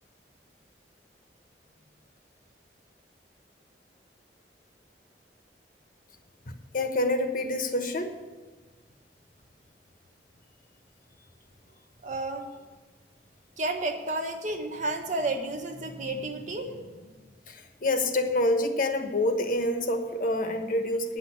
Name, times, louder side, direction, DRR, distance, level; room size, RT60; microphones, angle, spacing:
voice 1, 6.4-8.1 17.5-21.2, left 1 dB, 50° left, 6 dB, 1.1 m, -27 dB
voice 2, 12.0-12.5 13.6-17.0, right 2 dB, 45° right, 3 dB, 1.3 m, -31 dB
9.5 x 6.2 x 8.6 m, 1.4 s
head